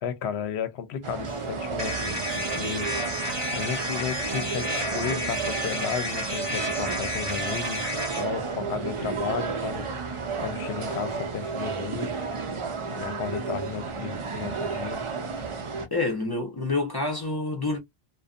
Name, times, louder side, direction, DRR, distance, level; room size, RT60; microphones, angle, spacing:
voice 1, 0.0-2.9 3.3-12.1 13.0-15.0, left 8 dB, 80° left, 0.9 m, -34 dB
sound 1, 1.0-15.9, right 4 dB, 50° right, 0.3 m, -32 dB
sound 2, 1.8-8.3, equal, 25° right, 0.9 m, -31 dB
voice 2, 15.9-17.8, left 3 dB, 25° left, 0.7 m, -27 dB
2.5 x 2.2 x 2.4 m
omnidirectional pair, 1.1 m